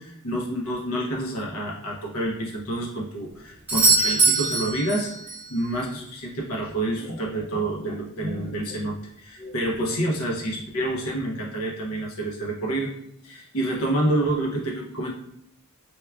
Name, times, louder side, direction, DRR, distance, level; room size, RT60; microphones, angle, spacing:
voice 1, 0.0-5.1 5.5-12.9 13.2-15.1, right 1 dB, 65° left, -2 dB, 0.6 m, -28 dB
Doorbell, 3.7-5.5 9.6-9.7, right 3 dB, 5° right, 0.7 m, -22 dB
4.4 x 2.3 x 2.2 m, 0.75 s
head